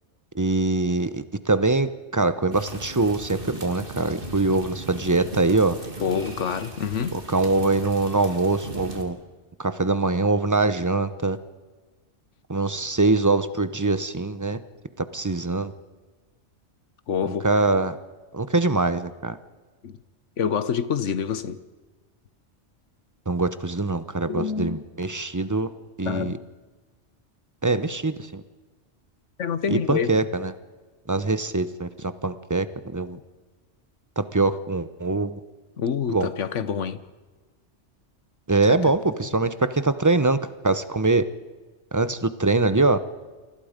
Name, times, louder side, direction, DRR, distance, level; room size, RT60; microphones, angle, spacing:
voice 1, 0.3-5.8 7.1-9.2 9.6-11.4 12.5-14.6 15.1-15.7 17.2-18.0 18.3-19.4 23.3-25.7 26.0-26.4 27.6-28.4 29.7-30.5 31.1-33.2 34.2-35.4 36.1-36.3 38.5-41.2 41.9-43.0, right 3 dB, 15° right, 0.8 m, -23 dB
sound 1, 2.5-9.0, right 2 dB, 50° right, 3.0 m, -38 dB
voice 2, 6.0-7.2 17.1-17.5 19.8-20.0 20.4-21.6 24.3-24.9 26.0-26.4 29.4-30.2 35.8-37.0 38.7-38.8, left 7 dB, 80° left, 1.4 m, -27 dB
29.0 x 24.0 x 5.2 m
omnidirectional pair, 1.2 m